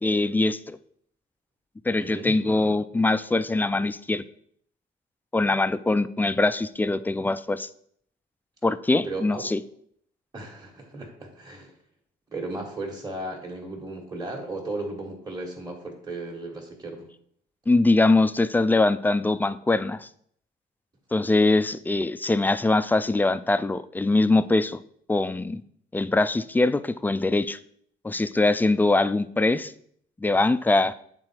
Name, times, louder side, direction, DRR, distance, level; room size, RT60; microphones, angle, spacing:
voice 1, 0.0-0.8 1.8-4.2 5.3-7.7 8.6-9.6 17.7-20.1 21.1-24.8 25.1-25.6 25.9-27.6 28.0-29.7 30.2-30.9, left 2 dB, 10° left, 14 dB, 0.3 m, -22 dB
voice 2, 2.0-2.4 9.0-9.4 10.3-11.7 12.3-17.1, right 2 dB, 20° right, -1 dB, 1.4 m, -35 dB
7.9 x 3.8 x 4.3 m, 0.65 s
cardioid pair, 90°, 20 cm